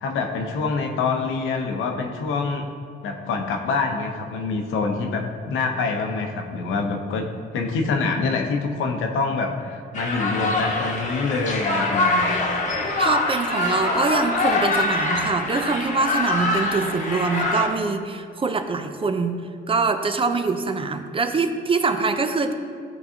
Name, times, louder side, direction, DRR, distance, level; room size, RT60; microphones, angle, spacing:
voice 1, 0.0-2.6 3.0-7.3 7.5-12.5, left 4 dB, 85° left, 3 dB, 0.8 m, -26 dB
sound 1, 9.9-17.7, left 2 dB, 40° left, 1.1 m, -24 dB
voice 2, 13.0-22.5, right 4 dB, 25° right, 8 dB, 0.5 m, -24 dB
11.0 x 3.9 x 2.8 m, 2.2 s
cardioid pair, 90°, 20 cm